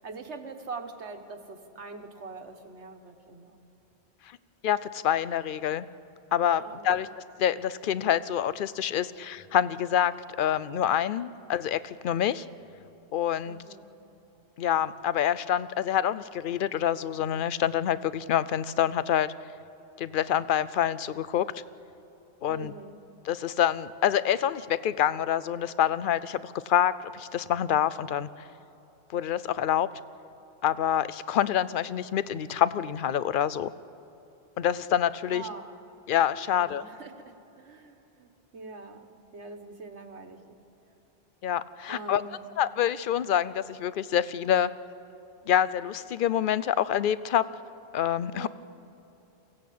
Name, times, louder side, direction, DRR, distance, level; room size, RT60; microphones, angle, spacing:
voice 1, 0.0-3.6 6.6-7.0 13.4-13.9 22.5-23.0 35.3-35.7 36.5-39.1 39.3-40.6 41.9-42.4 48.3-48.5, right 3 dB, 80° right, 6 dB, 1.7 m, -43 dB
voice 2, 4.6-5.9 6.3-7.1 7.4-12.5 13.1-13.6 14.6-19.3 20.0-21.5 22.4-22.7 23.3-28.3 29.1-29.9 30.6-33.7 34.6-35.5 36.1-36.8 41.4-42.2 42.6-44.7 45.5-47.4 47.9-48.5, left 10 dB, 55° left, 17 dB, 0.7 m, -26 dB
23.0 x 16.5 x 8.5 m, 3.0 s
omnidirectional pair, 1.1 m